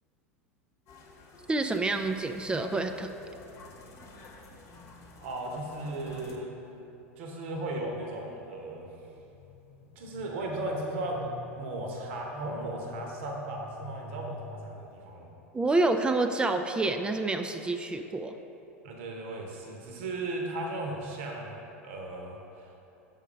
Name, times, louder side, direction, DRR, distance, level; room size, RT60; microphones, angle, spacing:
sound 1, 0.9-6.4, left 3 dB, 40° left, 1.0 m, -51 dB
voice 1, 1.5-3.1 15.5-18.4, right 2 dB, 10° right, 6 dB, 0.4 m, -28 dB
voice 2, 5.2-6.5 7.2-8.9 10.0-15.3 18.8-22.6, right 2 dB, 55° right, 1 dB, 0.9 m, -36 dB
sound 2, 7.4-15.2, left 2 dB, 70° left, 0.6 m, -48 dB
6.3 x 5.5 x 5.0 m, 2.8 s
figure-of-eight pair, 85°, 8 cm